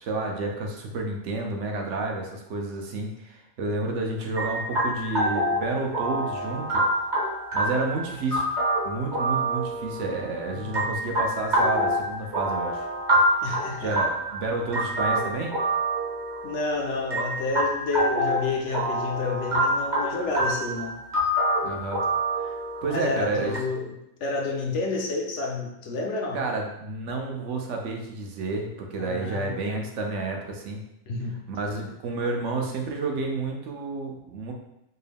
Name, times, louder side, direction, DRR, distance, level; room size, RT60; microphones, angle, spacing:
voice 1, 0.0-6.8 7.5-8.4 8.8-12.8 13.8-15.6 21.6-22.0 22.4-23.6 26.3-30.8 31.5-34.5, right 3 dB, 65° right, 2 dB, 0.9 m, -30 dB
sound 1, 4.4-23.6, right 1 dB, 40° right, 0.9 m, -27 dB
voice 2, 10.5-10.9 13.4-13.9 16.4-21.0 22.9-26.4 29.0-29.8 31.1-31.4, left 3 dB, 65° left, 0 dB, 0.8 m, -30 dB
4.4 x 2.1 x 3.4 m, 0.84 s
omnidirectional pair, 1.4 m